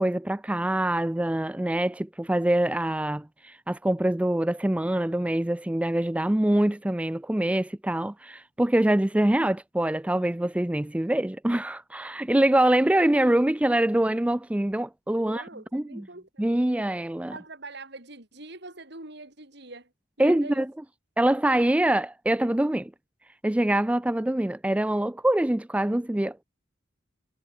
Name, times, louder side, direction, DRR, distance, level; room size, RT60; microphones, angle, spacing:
voice 1, 0.0-15.4 15.7-16.0 16.4-17.3 20.2-20.7 21.2-22.9 23.4-26.4, right 1 dB, 5° right, 0.3 m, -24 dB
voice 2, 15.2-16.4 17.3-19.9 20.2-20.6, right 2 dB, 60° right, 5.7 m, -43 dB
head